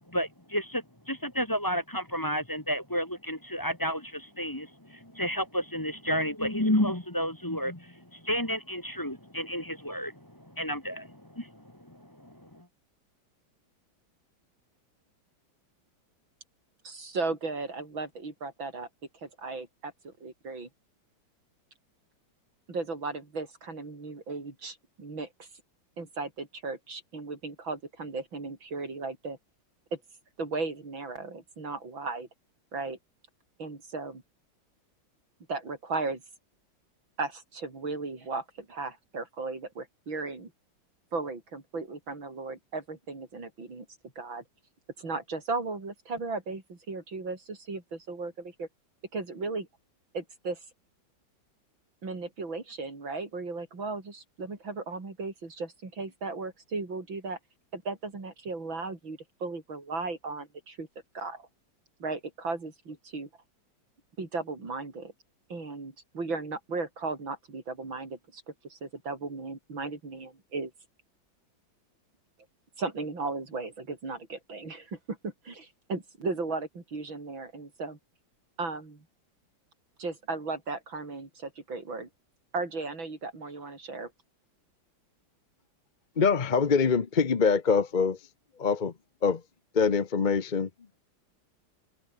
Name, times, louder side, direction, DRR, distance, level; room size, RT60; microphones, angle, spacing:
voice 1, 0.1-12.7, equal, 10° left, 1.6 m, -31 dB
voice 2, 16.8-18.9 19.2-20.7 22.7-25.5 26.0-29.4 29.9-30.0 30.4-32.3 32.7-33.0 33.6-34.2 35.5-36.2 37.2-40.5 41.1-43.9 44.2-44.4 45.0-48.7 49.1-49.7 50.1-50.6 52.0-57.4 57.7-60.9 61.1-61.5 62.0-63.3 64.2-65.1 65.5-70.7 72.8-78.0 78.6-79.0 80.0-82.1 82.5-84.1, right 3 dB, 80° right, 5.5 m, -36 dB
voice 3, 86.2-88.2 88.6-88.9 89.2-89.4 89.7-90.7, left 5 dB, 35° left, 0.7 m, -24 dB
open air
omnidirectional pair, 2.1 m